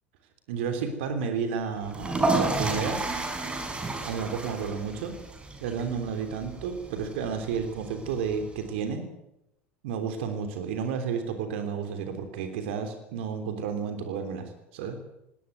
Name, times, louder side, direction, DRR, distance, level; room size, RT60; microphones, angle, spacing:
voice 1, 0.5-3.0 4.0-5.2 5.6-9.1 9.8-15.0, right 6 dB, 60° right, 8 dB, 3.3 m, -32 dB
sound 1, 1.9-8.7, right 2 dB, 15° right, 5.7 m, -32 dB
21.0 x 18.5 x 9.2 m, 0.85 s
figure-of-eight pair, 75°, 7 cm